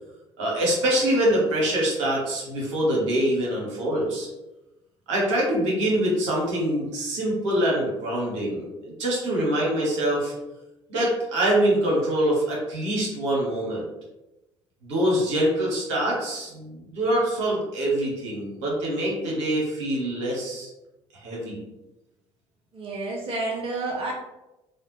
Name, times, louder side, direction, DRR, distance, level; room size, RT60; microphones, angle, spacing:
voice 1, 0.4-4.3 5.1-10.3 10.9-13.9 14.8-20.7 21.1-21.6, right 1 dB, 70° right, -4 dB, 1.0 m, -24 dB
voice 2, 22.7-24.1, right 2 dB, 35° right, -1 dB, 0.6 m, -30 dB
3.4 x 2.2 x 3.0 m, 0.97 s
figure-of-eight pair, 50°, 16 cm